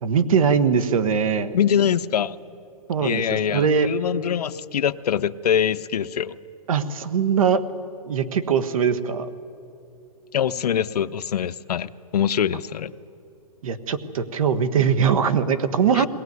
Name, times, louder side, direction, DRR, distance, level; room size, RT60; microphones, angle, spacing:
voice 1, 0.0-1.5 2.9-3.9 6.7-7.6 8.0-9.3 13.6-16.1, right 6 dB, 60° right, 12 dB, 1.4 m, -21 dB
voice 2, 1.5-2.4 3.0-6.3 10.3-12.9 15.9-16.1, left 9 dB, 75° left, 13 dB, 0.8 m, -24 dB
21.0 x 18.5 x 9.5 m, 2.7 s
hypercardioid pair, 165°, 20 cm